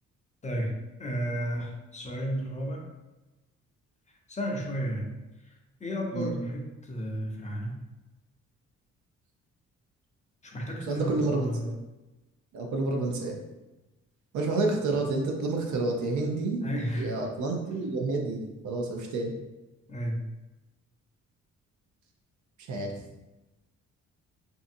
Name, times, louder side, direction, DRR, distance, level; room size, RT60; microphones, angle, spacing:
voice 1, 0.4-2.8 4.3-7.8 10.4-11.7 16.6-17.1 19.9-20.2, equal, 25° left, 0 dB, 0.5 m, -33 dB
voice 2, 10.9-11.7 12.5-13.4 14.3-16.6 16.9-19.3 22.7-22.9, right 3 dB, 75° right, 2 dB, 0.6 m, -29 dB
2.7 x 2.5 x 2.5 m, 1.1 s
cardioid pair, 90°, 30 cm